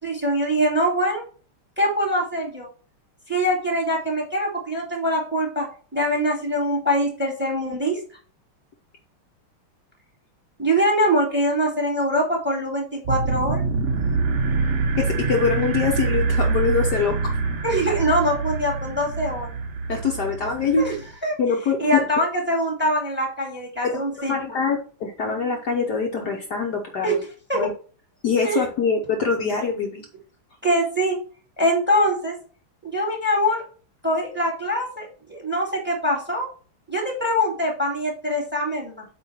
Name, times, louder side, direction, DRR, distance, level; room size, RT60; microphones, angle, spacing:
voice 1, 0.0-1.2 1.8-2.7 3.3-5.7 5.9-8.0 10.6-13.6 17.6-19.5 20.8-21.0 21.2-21.4 21.8-24.6 27.0-27.2 27.5-27.7 28.4-28.7 30.6-31.2 31.6-32.4 32.8-33.6 34.0-36.5 36.9-39.1, equal, 5° right, 1 dB, 1.9 m, -23 dB
sound 1, 13.0-21.1, right 4 dB, 65° right, 0.7 m, -25 dB
voice 2, 15.0-17.3 19.9-21.0 21.4-22.1 23.8-24.0 24.3-27.2 27.5-27.7 28.2-30.1, left 5 dB, 60° left, 1 dB, 1.3 m, -24 dB
8.4 x 3.1 x 5.8 m, 0.41 s
omnidirectional pair, 2.3 m